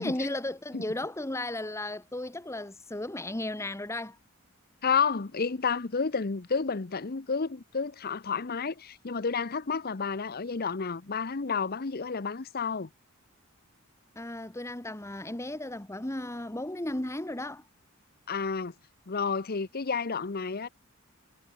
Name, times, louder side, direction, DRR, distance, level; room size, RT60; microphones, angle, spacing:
voice 1, 0.0-4.2 14.1-17.6, left 1 dB, 15° left, 1.2 m, -35 dB
voice 2, 4.8-12.9 18.3-18.7 19.1-20.7, left 5 dB, 45° left, 0.8 m, -30 dB
head